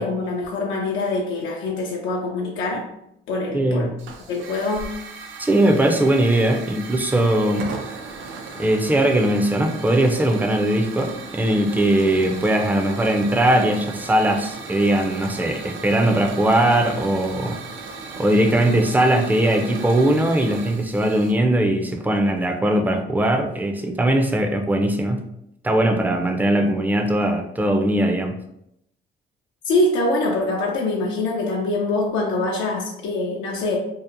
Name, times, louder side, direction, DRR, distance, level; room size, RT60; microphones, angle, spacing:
voice 1, 0.0-2.8 3.3-3.9 4.3-4.9 29.7-33.8, left 2 dB, 90° left, -1 dB, 0.4 m, -24 dB
voice 2, 3.5-4.0 5.4-7.7 8.6-17.6 18.2-25.2 25.6-28.3, right 1 dB, 10° right, 3 dB, 0.3 m, -20 dB
Hiss / Fire, 4.0-21.3, right 4 dB, 85° right, 0.4 m, -36 dB
2.7 x 2.1 x 2.4 m, 0.79 s
cardioid pair, 90°, 20 cm